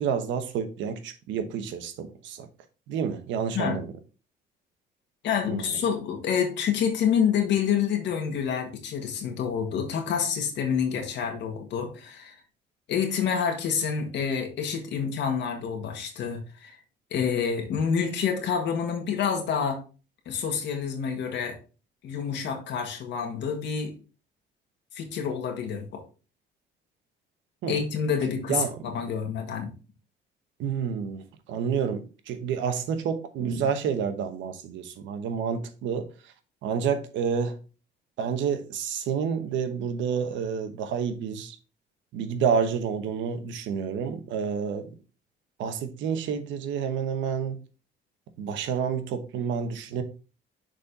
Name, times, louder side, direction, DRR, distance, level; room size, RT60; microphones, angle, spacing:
voice 1, 0.0-2.5 2.9-3.9 5.5-5.8 27.6-27.8 28.5-29.0 30.6-36.3 36.6-37.6 38.2-41.6 42.1-44.9 45.6-47.6 48.4-50.0, right 7 dB, 85° right, 1.0 m, -29 dB
voice 2, 5.2-12.4 12.9-16.8 17.1-19.8 20.2-21.6 22.0-23.9 24.9-26.0 27.7-29.7, left 7 dB, 70° left, 1.7 m, -28 dB
6.4 x 4.3 x 4.1 m
cardioid pair, 125°, 19 cm